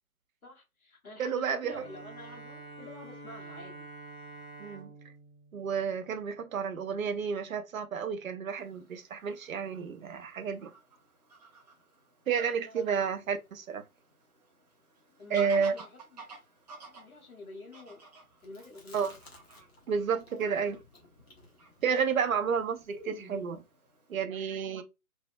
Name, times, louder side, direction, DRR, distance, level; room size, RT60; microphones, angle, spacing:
voice 1, 0.4-3.9 12.7-13.1 15.2-16.2 16.9-18.0 18.4-19.2, left 2 dB, 70° left, 1.4 m, -48 dB
voice 2, 1.2-1.8 4.6-4.9 5.5-10.7 12.3-13.8 15.3-15.7 18.9-19.1 19.9-20.8 21.8-23.6 24.1-24.8, right 6 dB, 65° right, 0.6 m, -31 dB
Bowed string instrument, 1.7-6.6, right 2 dB, 5° left, 0.5 m, -48 dB
Fowl / Bird vocalization bird call bird song, 8.5-24.2, right 3 dB, 30° right, 0.8 m, -55 dB
Chewing mastication, 18.4-19.9 20.2-23.6, left 2 dB, 45° left, 1.0 m, -53 dB
3.3 x 2.0 x 2.4 m
figure-of-eight pair, 140°, 44 cm